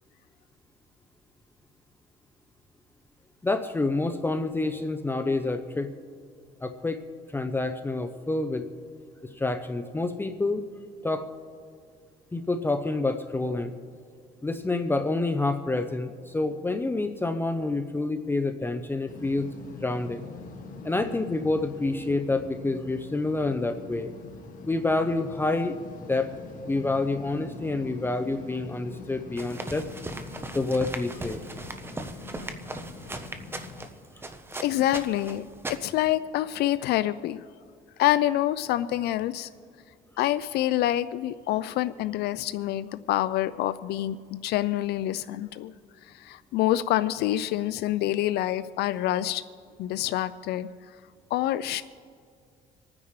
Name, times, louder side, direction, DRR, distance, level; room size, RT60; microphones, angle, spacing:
voice 1, 3.4-5.9 6.6-7.0 7.3-8.7 9.3-10.6 11.0-11.3 12.3-13.7 14.4-19.5 19.8-20.2 20.8-24.1 24.6-26.3 26.7-29.9 30.5-31.4, left 2 dB, 15° left, 8 dB, 0.6 m, -28 dB
sound 1, 19.1-33.9, left 3 dB, 50° left, 1.9 m, -44 dB
sound 2, 29.4-36.1, right 2 dB, 15° right, 0.8 m, -39 dB
voice 2, 34.6-35.4 35.8-37.4 38.0-39.5 40.2-45.7 46.0-49.4 49.8-50.7 51.3-51.8, left 13 dB, 75° left, 14 dB, 0.4 m, -26 dB
27.0 x 9.6 x 3.2 m, 2.3 s
cardioid pair, 110°, 17 cm